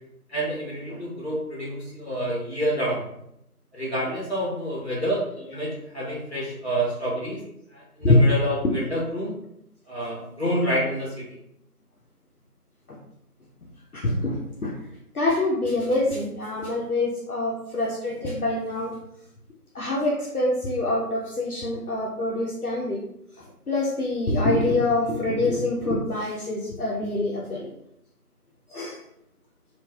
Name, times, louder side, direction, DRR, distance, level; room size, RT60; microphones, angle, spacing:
voice 1, 0.3-3.0 3.7-7.4 7.7-9.3 9.9-11.1, equal, 45° left, -5 dB, 1.2 m, -28 dB
voice 2, 13.9-14.7 15.1-19.0 19.7-23.0 23.7-27.7 28.7-29.0, left 2 dB, 70° left, -4 dB, 0.7 m, -25 dB
3.1 x 2.5 x 2.2 m, 0.79 s
figure-of-eight pair, 175°, 46 cm